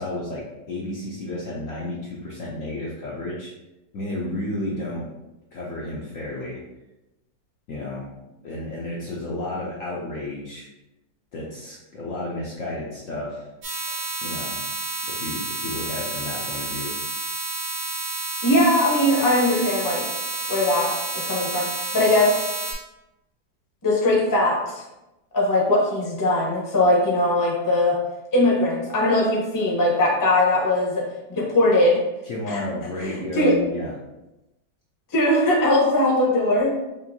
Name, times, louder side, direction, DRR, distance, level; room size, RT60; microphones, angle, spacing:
voice 1, 0.0-3.5 3.9-5.1 5.5-6.6 7.7-8.1 8.4-10.7 11.3-13.5 14.2-14.6 15.0-16.9 32.2-34.0, left 1 dB, 65° left, -4 dB, 0.8 m, -32 dB
sound 1, 13.6-22.7, right 2 dB, 70° right, 1.8 m, -30 dB
voice 2, 18.4-20.0 20.5-22.5 23.8-24.8 25.3-28.0 28.3-32.0 32.5-32.6 33.0-33.5 35.1-36.7, left 1 dB, 20° left, -4 dB, 0.5 m, -20 dB
5.3 x 2.6 x 2.7 m, 0.98 s
omnidirectional pair, 1.9 m